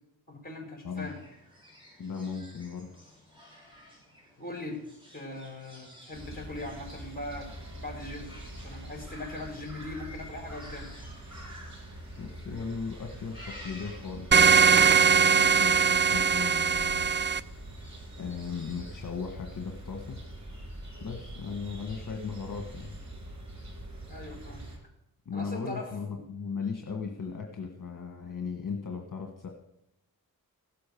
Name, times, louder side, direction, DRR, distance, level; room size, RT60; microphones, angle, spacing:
voice 1, 0.3-1.2 4.4-4.8 5.1-7.5 7.8-10.9 24.1-24.7 25.3-26.2, left 2 dB, 25° left, 2 dB, 5.3 m, -40 dB
sound 1, 0.9-19.2, left 1 dB, 15° right, 7.0 m, -55 dB
voice 2, 2.0-2.9 12.2-17.1 18.2-20.2 21.0-22.9 25.2-29.5, left 5 dB, 60° left, 2 dB, 1.6 m, -37 dB
sound 2, 6.1-24.8, right 1 dB, 50° right, 4.0 m, -44 dB
sound 3, 14.3-17.4, right 6 dB, 30° right, 0.5 m, -21 dB
16.5 x 6.9 x 6.8 m, 0.81 s
cardioid pair, 60°, 37 cm